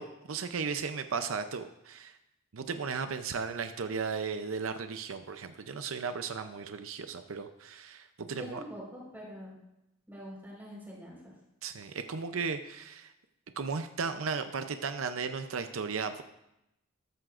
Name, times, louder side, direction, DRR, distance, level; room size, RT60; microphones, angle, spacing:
voice 1, 0.0-2.2 2.5-8.6 11.6-13.1 13.6-16.2, right 5 dB, 85° right, 8 dB, 0.6 m, -35 dB
voice 2, 8.3-9.6 10.1-11.3, equal, 10° right, -4 dB, 4.4 m, -44 dB
13.5 x 13.0 x 2.5 m, 0.86 s
head